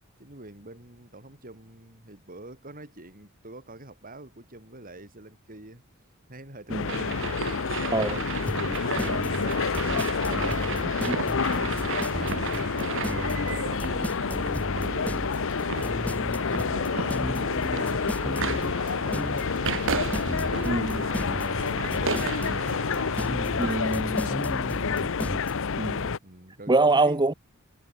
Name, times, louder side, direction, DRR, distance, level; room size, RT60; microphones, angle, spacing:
voice 1, 0.2-7.3 7.7-9.7 10.2-13.8 14.7-18.0 18.5-25.1 26.2-27.2, right 2 dB, 40° right, 6.5 m, -46 dB
sound 1, 6.7-26.2, left 5 dB, 65° left, 0.8 m, -28 dB
voice 2, 6.7-7.1 7.9-8.2 11.0-11.1 20.6-21.0 23.6-24.3 25.8-26.1 26.7-27.3, right 2 dB, 20° right, 1.1 m, -25 dB
sound 2, 6.9-23.9, right 6 dB, 65° right, 1.2 m, -35 dB
sound 3, 8.5-25.5, equal, 5° left, 1.6 m, -34 dB
head